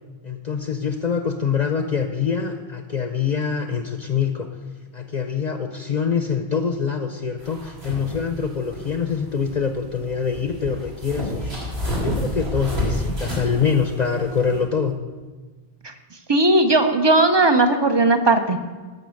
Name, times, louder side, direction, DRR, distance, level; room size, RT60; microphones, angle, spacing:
voice 1, 0.2-4.5 4.9-11.6 11.9-14.9, left 6 dB, 50° left, 6 dB, 0.7 m, -25 dB
sound 1, 7.4-14.6, left 1 dB, 85° right, 3.6 m, -30 dB
voice 2, 16.3-18.7, right 2 dB, 30° right, 8 dB, 0.8 m, -17 dB
12.0 x 6.4 x 6.4 m, 1.4 s
omnidirectional pair, 1.0 m